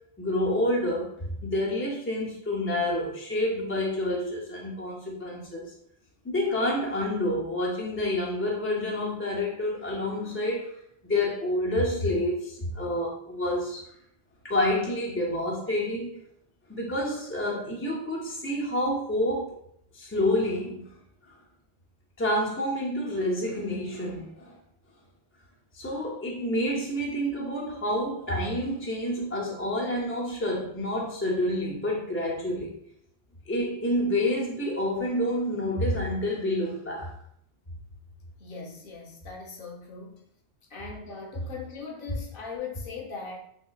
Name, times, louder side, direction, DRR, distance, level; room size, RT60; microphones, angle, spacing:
voice 1, 0.2-5.7 6.2-10.7 11.0-13.8 14.4-16.2 16.7-19.5 19.9-20.9 22.2-24.6 25.7-32.7 33.5-37.1, left 1 dB, 20° left, -3 dB, 0.3 m, -28 dB
voice 2, 38.4-40.2 40.7-43.4, left 5 dB, 60° left, 0 dB, 0.8 m, -40 dB
3.5 x 2.9 x 2.3 m, 0.71 s
omnidirectional pair, 1.1 m